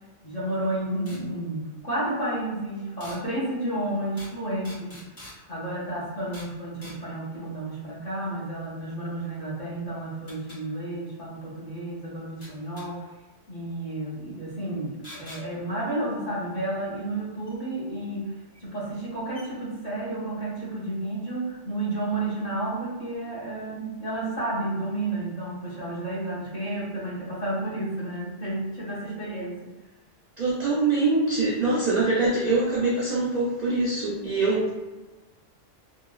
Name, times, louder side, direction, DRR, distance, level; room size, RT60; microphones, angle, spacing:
voice 1, 0.2-5.0 5.2-13.0 13.5-29.7, right 1 dB, 40° left, -8 dB, 0.8 m, -31 dB
sound 1, 1.1-1.2 3.0-3.2 4.2-4.4 4.6-5.4 6.3-6.5 6.8-7.0 9.2-9.3 10.3-10.6 12.4-12.9 15.0-15.4 17.5-17.6 18.5-18.6 19.0-19.1 19.3-19.5, left 1 dB, 60° left, 1.3 m, -44 dB
voice 2, 30.4-34.7, right 3 dB, 60° right, -5 dB, 0.4 m, -24 dB
2.9 x 2.3 x 2.3 m, 1.2 s
omnidirectional pair, 1.2 m